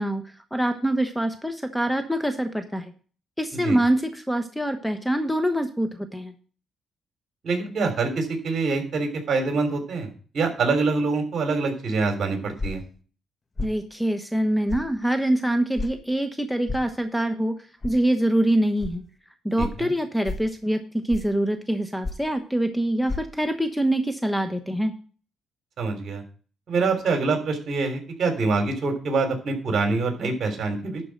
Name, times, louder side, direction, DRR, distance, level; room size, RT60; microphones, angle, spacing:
voice 1, 0.0-2.9 3.4-6.3 13.6-17.6 17.8-19.0 19.4-24.9, right 1 dB, ahead, 7 dB, 1.2 m, -25 dB
voice 2, 7.4-12.8 19.6-19.9 25.8-26.2 26.7-31.0, right 4 dB, 55° right, 5 dB, 3.6 m, -25 dB
sound 1, 12.6-12.9 13.6-13.8 14.7-14.9 15.8-15.9 16.7-16.9 17.8-18.0 18.8-18.9 19.6-19.8 20.2-20.5 21.1-21.4 22.0-22.3 23.1-23.2, left 2 dB, 30° left, 1.4 m, -31 dB
11.5 x 4.7 x 7.7 m, 0.40 s
cardioid pair, 90°, 0 cm